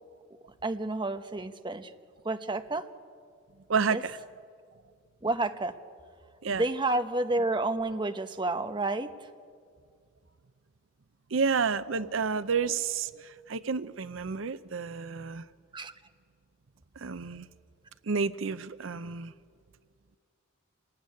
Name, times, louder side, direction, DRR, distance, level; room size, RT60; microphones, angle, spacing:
voice 1, 0.6-1.9 2.2-2.9 3.9-4.0 5.2-5.8 6.5-9.1 15.7-15.9, right 2 dB, 25° right, 8 dB, 1.0 m, -30 dB
voice 2, 3.7-4.2 6.4-6.6 11.3-15.4 17.0-17.5 18.1-19.3, right 5 dB, 75° right, 14 dB, 0.6 m, -30 dB
26.5 x 19.0 x 9.7 m, 2.2 s
head